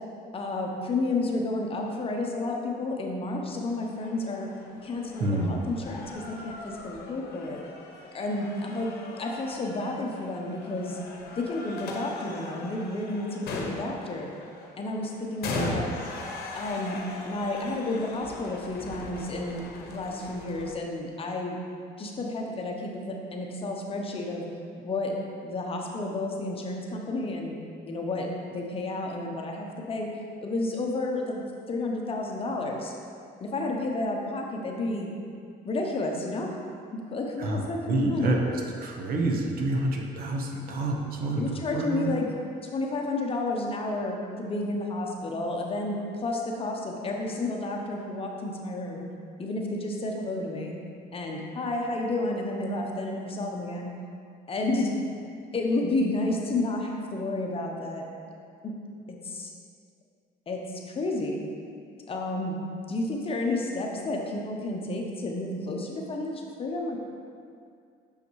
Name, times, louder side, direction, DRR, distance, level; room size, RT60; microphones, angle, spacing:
voice 1, 0.3-4.5 4.8-7.6 8.1-11.0 11.3-14.3 14.8-15.9 16.5-17.0 17.2-19.6 19.9-21.6 22.0-24.5 24.8-25.1 25.4-27.6 27.9-30.1 30.4-31.4 31.7-32.9 33.4-35.1 35.6-36.5 36.9-38.4 41.4-42.3 42.7-49.1 49.4-50.8 51.1-53.9 54.5-54.9 55.5-58.1 58.6-58.7 59.1-59.5 60.5-61.4 62.1-62.6 62.9-67.0, left 2 dB, 35° left, 0 dB, 0.8 m, -31 dB
sound 1, 3.7-20.7, left 3 dB, 70° left, 0.9 m, -40 dB
voice 2, 5.2-5.5 15.5-15.8 37.4-42.1, right 2 dB, 60° right, 1 dB, 0.9 m, -28 dB
6.4 x 5.6 x 3.1 m, 2.3 s
cardioid pair, 110°, 17 cm